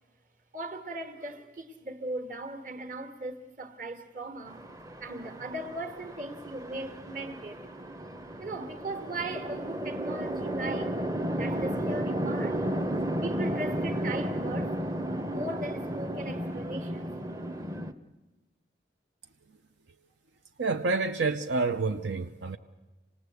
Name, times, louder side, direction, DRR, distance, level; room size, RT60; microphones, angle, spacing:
voice 1, 0.5-4.6 5.0-7.7 8.4-11.0 11.4-12.9 13.2-14.8 15.3-17.2, right 1 dB, 45° right, 1.7 m, -38 dB
Chatter / Traffic noise roadway noise / Train, 4.5-17.9, right 1 dB, 20° right, 0.7 m, -33 dB
voice 2, 20.6-22.6, right 3 dB, 85° right, 0.7 m, -28 dB
26.5 x 19.0 x 8.2 m
head